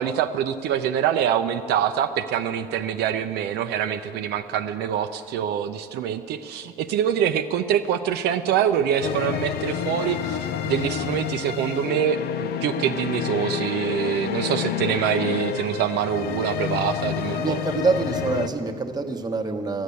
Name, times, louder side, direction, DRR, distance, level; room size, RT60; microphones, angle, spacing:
voice 1, 0.0-10.4 10.6-17.6, right 9 dB, 80° right, 7 dB, 0.6 m, -25 dB
sound 1, 9.0-18.5, left 9 dB, 70° left, 0.6 m, -29 dB
voice 2, 17.4-19.8, right 4 dB, 25° right, 4 dB, 1.1 m, -25 dB
13.0 x 10.5 x 8.3 m, 2.5 s
cardioid pair, 110°, 17 cm